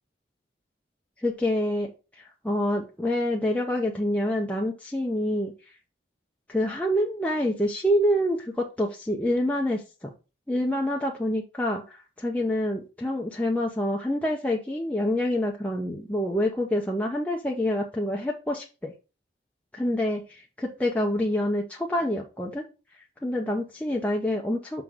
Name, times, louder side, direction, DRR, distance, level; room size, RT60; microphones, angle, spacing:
voice 1, 1.2-1.9 2.2-5.5 6.5-10.1 10.5-18.9 19.7-22.6 23.2-24.8, left 1 dB, 10° left, -2 dB, 0.8 m, -27 dB
5.9 x 3.8 x 6.1 m, 0.31 s
head